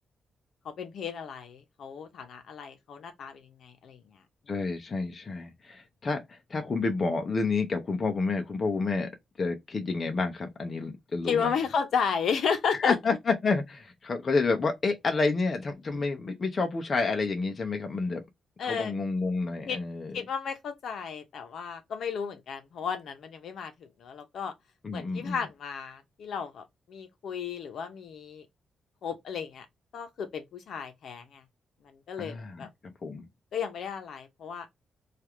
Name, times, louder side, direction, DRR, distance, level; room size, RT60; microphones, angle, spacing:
voice 1, 0.6-4.2 11.3-12.9 18.6-18.9 19.7-19.8 20.1-24.5 24.9-28.5 29.0-29.7 29.9-31.4 31.8-32.7 33.5-34.7, left 6 dB, 65° left, 0.8 m, -33 dB
voice 2, 4.5-9.1 9.4-11.5 12.7-18.2 18.7-20.2 24.8-25.4 32.2-33.2, left 4 dB, 30° left, 0.6 m, -29 dB
3.3 x 2.4 x 4.3 m
wide cardioid pair, 170°, 0 cm